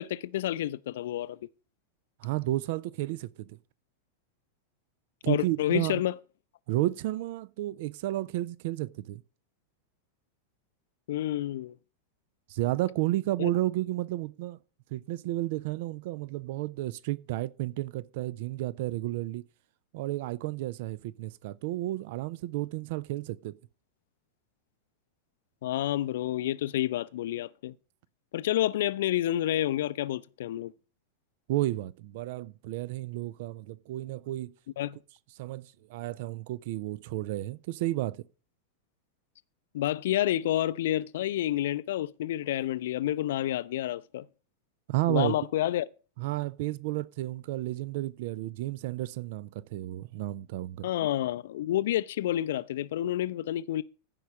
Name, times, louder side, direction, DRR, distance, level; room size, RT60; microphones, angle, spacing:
voice 1, 0.0-1.4 5.3-6.1 11.1-11.7 13.4-13.5 25.6-27.7 28.3-30.7 34.8-35.0 39.7-44.3 45.1-45.9 50.8-53.8, left 13 dB, 55° left, 0.5 m, -29 dB
voice 2, 2.2-3.6 5.2-6.0 6.7-9.2 12.5-14.6 14.9-19.4 19.9-23.5 31.5-34.5 35.4-38.2 44.9-45.4 46.2-50.9, right 16 dB, 50° right, 0.6 m, -32 dB
15.0 x 5.4 x 5.9 m
figure-of-eight pair, 90°, 0 cm